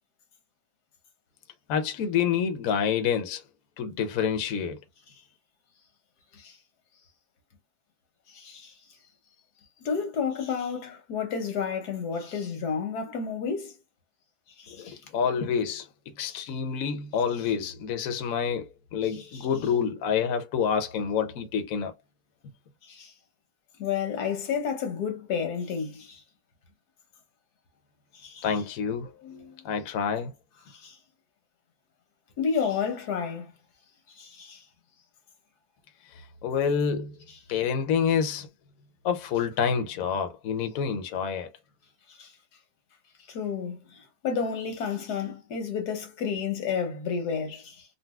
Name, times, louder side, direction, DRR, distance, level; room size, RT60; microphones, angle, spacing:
voice 1, 1.7-3.4 3.8-4.8 14.7-15.9 16.2-21.9 28.4-29.1 29.6-30.3 36.4-37.2 37.5-38.5 39.0-41.5, left 7 dB, 65° left, 1.0 m, -27 dB
voice 2, 8.3-8.7 9.8-13.7 14.6-15.0 16.3-16.4 19.3-19.5 22.8-23.1 23.8-26.2 28.2-28.4 29.1-29.5 30.7-31.0 32.4-33.5 34.2-34.6 42.1-42.3 43.3-47.8, left 6 dB, 85° left, 1.6 m, -31 dB
3.9 x 2.3 x 2.3 m
omnidirectional pair, 1.7 m